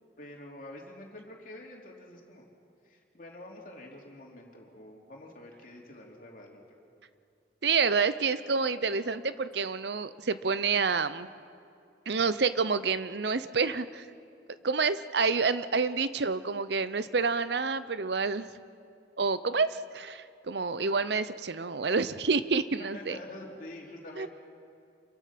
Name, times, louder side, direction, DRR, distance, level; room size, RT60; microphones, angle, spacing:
voice 1, 0.2-2.5 2.8-6.6 22.9-24.3, left 1 dB, 45° left, -1 dB, 3.2 m, -46 dB
voice 2, 7.6-11.3 12.1-14.0 14.6-18.5 19.2-23.2 24.2-24.3, right 4 dB, 70° right, 14 dB, 0.7 m, -28 dB
27.5 x 22.0 x 6.0 m, 2.4 s
head